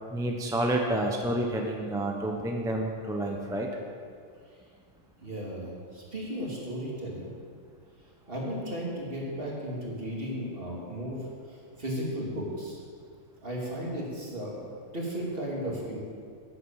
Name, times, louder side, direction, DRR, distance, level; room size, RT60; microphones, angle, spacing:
voice 1, 0.1-3.7, right 1 dB, 5° right, 1 dB, 0.9 m, -29 dB
voice 2, 5.2-7.3 8.3-12.8 13.4-16.0, equal, 45° right, -4 dB, 2.9 m, -35 dB
10.0 x 10.0 x 7.3 m, 2.2 s
omnidirectional pair, 1.3 m